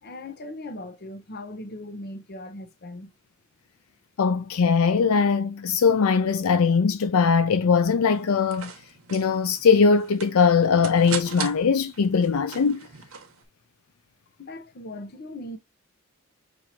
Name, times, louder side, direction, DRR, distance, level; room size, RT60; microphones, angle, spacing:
voice 1, 0.0-3.1 14.4-15.6, left 1 dB, 50° left, 0.7 m, -39 dB
voice 2, 4.2-8.7 9.1-12.9, left 5 dB, 75° left, 0.4 m, -20 dB
sound 1, 8.1-13.4, right 7 dB, 80° right, 1.0 m, -39 dB
5.9 x 2.6 x 2.7 m
head